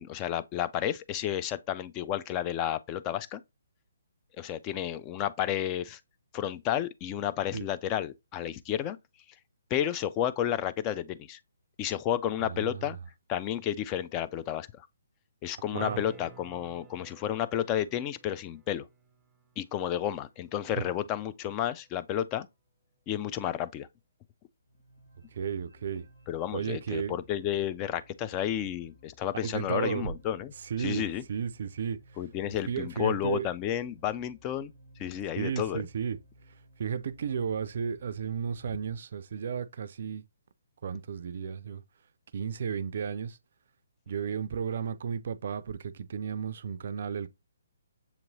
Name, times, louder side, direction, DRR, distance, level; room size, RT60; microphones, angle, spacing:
voice 1, 0.0-3.4 4.3-6.0 6.3-9.0 9.7-11.4 11.8-13.0 13.3-14.9 15.4-18.9 19.6-22.5 23.1-23.9 26.3-30.5 30.8-31.2 32.2-34.7 35.0-35.9, left 11 dB, 25° left, 0.3 m, -31 dB
voice 2, 12.4-12.8 15.7-16.0 25.3-26.1 26.5-27.1 29.4-30.0 30.7-31.0 31.3-32.0 32.7-33.4 35.4-36.2 36.8-40.2 40.8-41.8 42.3-43.4 44.1-47.3, right 7 dB, 60° right, 0.3 m, -33 dB
sound 1, 15.8-21.8 26.5-26.6, right 4 dB, 10° right, 0.7 m, -53 dB
sound 2, 24.6-39.0, equal, 85° left, 2.3 m, -57 dB
6.8 x 2.9 x 2.7 m
hypercardioid pair, 145°, 0 cm